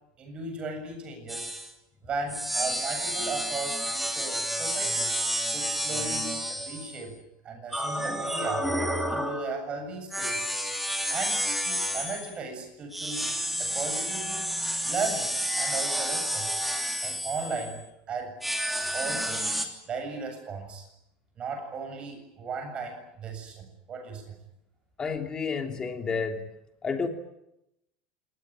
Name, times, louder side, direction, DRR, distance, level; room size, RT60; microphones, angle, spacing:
voice 1, 0.2-1.5 2.0-5.2 5.5-7.2 7.4-8.7 9.1-10.5 11.1-13.3 13.6-14.5 14.9-16.5 17.0-18.4 18.9-19.5 19.9-20.9 21.4-24.3, right 4 dB, 25° right, 6 dB, 7.5 m, -36 dB
sound 1, 1.3-1.7 2.3-7.0 7.7-9.6 10.1-12.3 12.9-17.8 18.4-19.7, equal, ahead, 3.1 m, -30 dB
voice 2, 25.0-26.4 26.8-27.1, left 5 dB, 20° left, 4 dB, 3.1 m, -30 dB
27.0 x 20.0 x 9.0 m, 0.84 s
cardioid pair, 165°, 4 cm